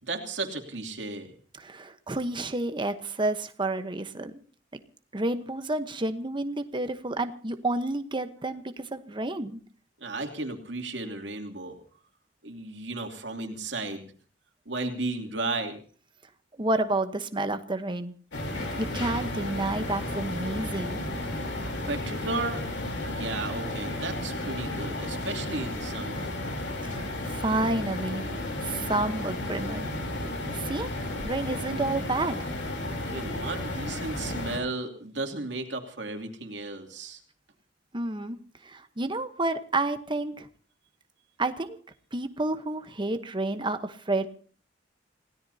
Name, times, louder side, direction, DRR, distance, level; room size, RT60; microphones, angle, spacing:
voice 1, 0.0-1.3 10.0-11.7 12.4-14.1 14.7-15.8 21.9-22.6 23.1-26.3 33.1-37.2, right 2 dB, 70° right, 4 dB, 2.8 m, -34 dB
voice 2, 1.6-4.4 4.7-4.8 5.1-9.6 16.6-18.1 18.8-21.0 26.8-28.3 28.6-29.9 30.5-30.9 31.2-32.5 37.9-40.5 41.4-41.8 42.1-44.3, right 2 dB, 25° right, 9 dB, 1.1 m, -30 dB
sound 1, 18.3-34.6, left 1 dB, 70° left, 3.5 m, -33 dB
29.0 x 17.0 x 2.8 m, 0.43 s
head